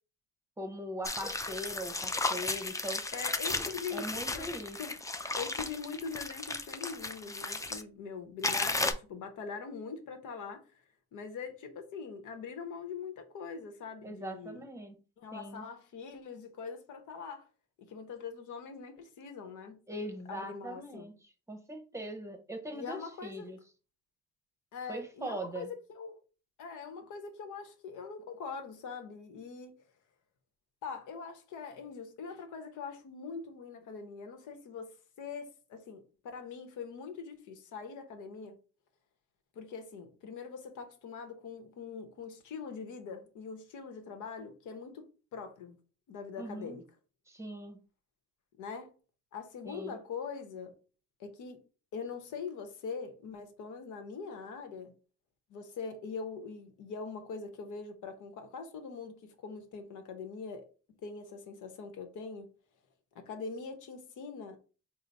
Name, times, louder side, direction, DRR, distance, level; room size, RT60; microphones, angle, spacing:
voice 1, 0.6-3.0 3.9-4.8 14.0-15.0 15.3-15.7 19.9-23.6 24.9-25.7 46.4-46.8 47.3-47.8 49.6-50.0, equal, 10° right, 0.8 m, -41 dB
sound 1, 1.0-7.8 8.4-8.9, left 2 dB, 10° left, 0.4 m, -35 dB
voice 2, 3.1-4.1 4.3-4.5 4.8-4.9 5.3-10.6 11.1-14.6 15.2-17.5 17.9-19.8 20.3-21.1 22.7-23.6 24.7-26.2 26.6-29.7 30.8-34.9 35.2-38.6 39.5-45.8 46.1-46.8 48.6-48.9 49.3-50.8 51.2-51.6 51.9-54.9 55.5-59.1 59.4-60.7 61.0-62.5 63.1-64.6, left 5 dB, 80° left, 0.9 m, -42 dB
3.8 x 2.0 x 4.0 m
cardioid pair, 90°, 30 cm